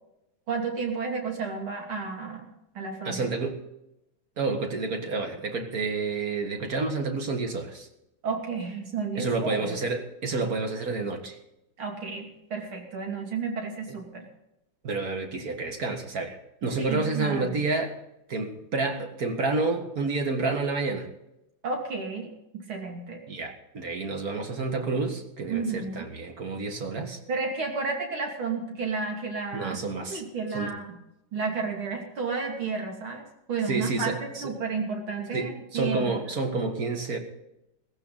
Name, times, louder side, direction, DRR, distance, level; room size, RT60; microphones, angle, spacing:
voice 1, 0.5-2.5 2.8-3.3 8.2-9.8 11.8-14.3 16.8-17.5 21.6-23.2 25.5-26.1 27.3-29.8 30.1-31.0 31.3-36.2, right 4 dB, 85° right, 1 dB, 3.5 m, -32 dB
voice 2, 3.0-3.6 4.4-7.9 9.2-11.4 14.8-18.0 18.3-21.1 23.3-27.2 29.5-30.2 30.5-30.7 33.7-34.5 35.3-37.2, right 3 dB, 45° right, 5 dB, 2.1 m, -29 dB
16.0 x 15.5 x 4.0 m, 0.87 s
omnidirectional pair, 2.2 m